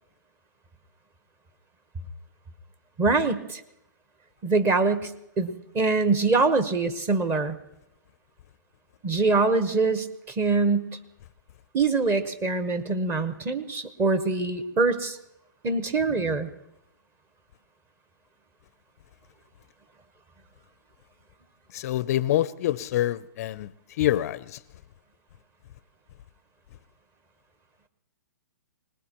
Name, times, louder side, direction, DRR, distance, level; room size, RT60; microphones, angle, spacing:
voice 1, 3.0-3.6 4.4-5.1 5.4-7.6 9.0-10.9 11.7-15.2 15.6-16.5, right 3 dB, 20° right, 1.1 m, -24 dB
voice 2, 21.7-23.7 24.0-24.6, left 13 dB, 45° left, 0.5 m, -26 dB
24.5 x 19.5 x 3.0 m
hypercardioid pair, 135°, 11 cm